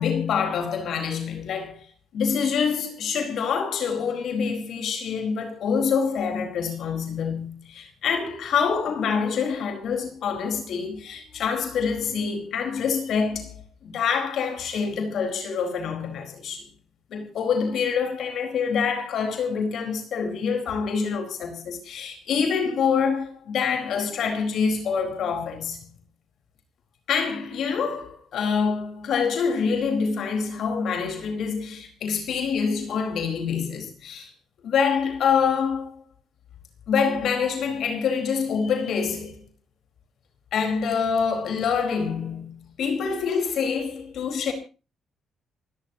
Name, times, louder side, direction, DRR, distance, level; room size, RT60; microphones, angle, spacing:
voice 1, 0.0-1.9 2.1-16.6 17.1-25.8 27.1-34.3 34.6-36.0 36.9-39.4 40.5-44.5, left 6 dB, 70° left, 4.5 m, -26 dB
28.5 x 13.5 x 2.9 m
cardioid pair, 90°, 0 cm